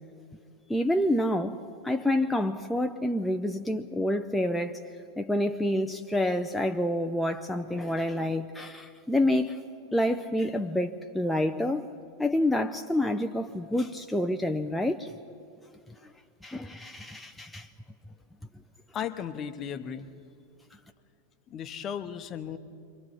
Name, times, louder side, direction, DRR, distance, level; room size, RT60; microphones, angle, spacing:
voice 1, 0.7-1.6 1.8-4.8 5.2-9.7 9.9-11.9 12.2-15.1 16.4-17.7, left 1 dB, 5° left, 5 dB, 0.6 m, -28 dB
voice 2, 18.9-20.1 21.5-22.6, left 8 dB, 30° left, 11 dB, 1.0 m, -35 dB
28.0 x 23.0 x 4.2 m, 2.4 s
figure-of-eight pair, 90°, 0 cm